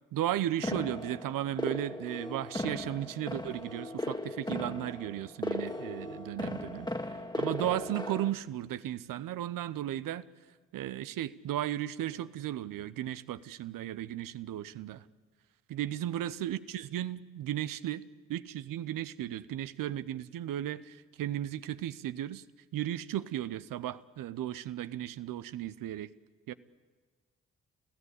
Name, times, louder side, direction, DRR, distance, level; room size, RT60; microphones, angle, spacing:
voice 1, 0.1-10.2 10.7-15.0 15.7-18.0 18.3-22.4 22.7-26.1 26.5-26.6, right 12 dB, 70° right, 15 dB, 0.9 m, -35 dB
sound 1, 0.6-8.3, left 2 dB, 10° left, 1.9 m, -37 dB
29.5 x 15.5 x 8.2 m, 1.4 s
hypercardioid pair, 40°, 34 cm